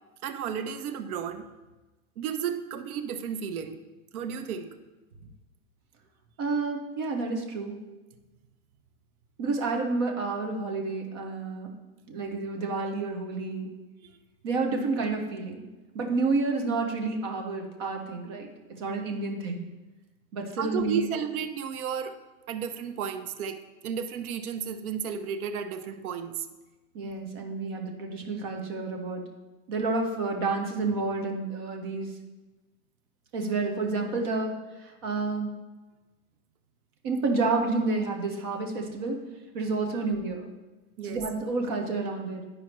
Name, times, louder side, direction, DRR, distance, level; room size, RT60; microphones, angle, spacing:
voice 1, 0.2-1.5 2.2-3.8 4.1-4.7 20.6-22.2 22.5-26.5 39.9-40.0 41.0-41.2, right 7 dB, 85° right, 8 dB, 0.9 m, -33 dB
voice 2, 6.4-7.8 9.4-11.7 12.1-13.7 14.4-15.6 15.9-19.7 20.3-21.0 26.9-29.2 29.7-32.1 33.3-35.5 37.0-39.2 39.5-40.5 41.0-42.4, right 3 dB, 20° right, 2 dB, 0.3 m, -30 dB
11.0 x 4.9 x 3.1 m, 1.2 s
supercardioid pair, 165°, 42 cm